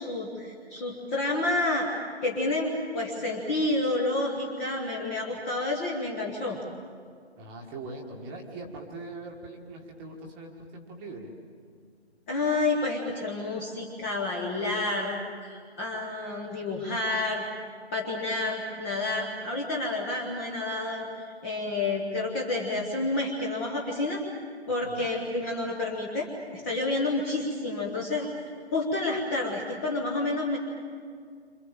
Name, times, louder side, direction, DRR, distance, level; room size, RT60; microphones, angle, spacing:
voice 1, 0.0-1.9 2.2-6.6 12.3-17.4 17.9-24.2 24.7-28.3 28.7-30.6, left 2 dB, 10° left, -2 dB, 1.3 m, -29 dB
voice 2, 7.4-11.3 24.8-25.1, right 2 dB, 10° right, 1 dB, 1.6 m, -41 dB
29.5 x 26.5 x 7.4 m, 2.1 s
hypercardioid pair, 165°, 34 cm